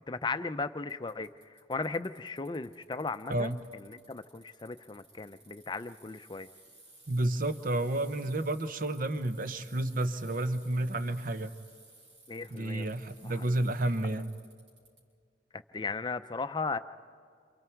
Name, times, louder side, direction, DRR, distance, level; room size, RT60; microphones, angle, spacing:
voice 1, 0.1-1.3 1.7-6.5 12.3-12.9 13.2-13.3 15.7-16.8, left 4 dB, 25° left, 11 dB, 0.6 m, -36 dB
Bicycle, 0.9-15.0, right 2 dB, 85° right, 6.3 m, -58 dB
voice 2, 7.1-11.5 12.5-14.3, right 1 dB, 50° right, 10 dB, 0.9 m, -31 dB
29.0 x 27.5 x 4.6 m, 2.1 s
head